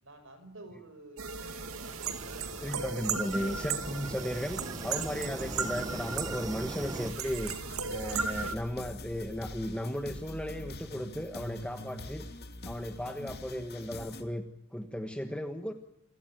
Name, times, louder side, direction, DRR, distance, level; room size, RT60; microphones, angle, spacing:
voice 1, 0.0-2.8, right 2 dB, 65° right, 11 dB, 5.1 m, -52 dB
sound 1, 1.2-7.1, right 1 dB, 15° right, 0.8 m, -42 dB
sound 2, 1.2-8.5, right 5 dB, 85° right, 2.3 m, -36 dB
voice 2, 2.6-12.3 12.6-14.4 14.7-15.7, equal, 5° left, 6 dB, 1.3 m, -36 dB
sound 3, 7.0-14.2, left 1 dB, 50° left, 2.7 m, -44 dB
27.5 x 17.5 x 9.2 m, 0.82 s
head